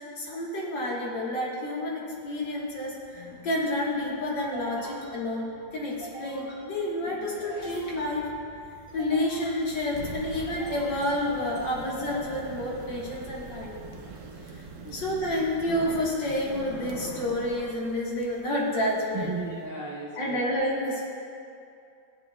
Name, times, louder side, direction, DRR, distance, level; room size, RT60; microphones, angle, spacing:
voice 1, 0.2-8.3 8.9-14.0 14.6-14.7 14.9-19.3 20.2-21.1, left 1 dB, 75° left, -4 dB, 2.3 m, -29 dB
sound 1, 2.2-14.8, right 1 dB, 5° right, 2.0 m, -48 dB
sound 2, 9.7-19.7, right 4 dB, 60° right, 0.9 m, -44 dB
voice 2, 14.7-15.1 19.1-20.4, right 3 dB, 30° right, -6 dB, 0.8 m, -36 dB
15.5 x 9.0 x 2.3 m, 2.5 s
omnidirectional pair, 2.0 m